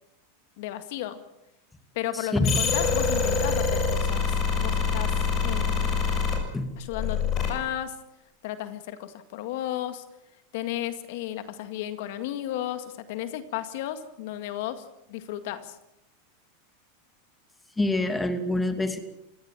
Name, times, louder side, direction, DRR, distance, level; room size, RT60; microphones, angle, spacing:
voice 1, 0.6-1.2 2.0-5.1 5.4-6.0 6.8-8.0 8.4-10.0 10.5-15.8, left 12 dB, 65° left, 10 dB, 2.0 m, -34 dB
voice 2, 2.3-2.6 6.5-6.7 17.8-19.0, left 2 dB, 10° left, 8 dB, 2.6 m, -25 dB
sound 1, 2.4-6.4 6.9-7.5, left 5 dB, 35° left, 7.1 m, -25 dB
27.5 x 17.0 x 7.5 m, 0.88 s
supercardioid pair, 125°, 0 cm